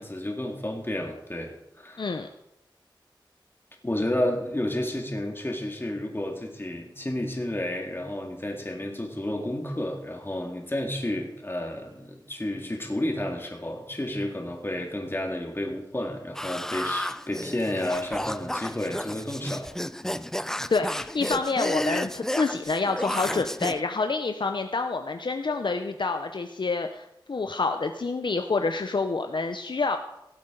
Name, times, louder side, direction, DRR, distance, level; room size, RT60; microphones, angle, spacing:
voice 1, 0.0-2.2 3.8-19.7 20.0-20.5, left 1 dB, 25° left, 2 dB, 2.0 m, -31 dB
voice 2, 2.0-2.3 20.7-30.0, left 3 dB, 65° left, 6 dB, 0.6 m, -27 dB
sound 1, 16.3-23.8, left 1 dB, 5° left, 0.3 m, -32 dB
17.5 x 7.9 x 3.8 m, 0.85 s
wide cardioid pair, 75°, 8 cm